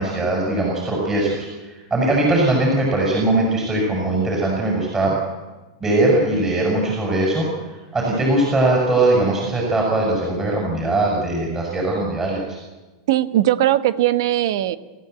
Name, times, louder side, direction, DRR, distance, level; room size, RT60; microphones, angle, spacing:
voice 1, 0.0-5.2 5.8-12.6, right 2 dB, 20° right, -1 dB, 6.9 m, -20 dB
voice 2, 13.1-14.8, right 13 dB, 70° right, 14 dB, 1.3 m, -19 dB
28.0 x 14.0 x 8.2 m, 1.2 s
hypercardioid pair, 125°, 2 cm